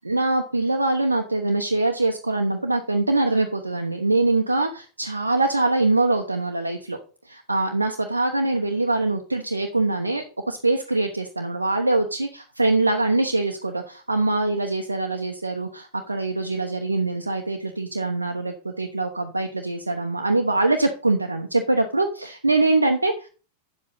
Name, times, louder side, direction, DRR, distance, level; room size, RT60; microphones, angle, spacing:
voice 1, 0.0-7.0 7.2-23.3, right 2 dB, 80° right, 4 dB, 1.0 m, -23 dB
9.3 x 7.6 x 4.0 m, 0.36 s
figure-of-eight pair, 90°, 0 cm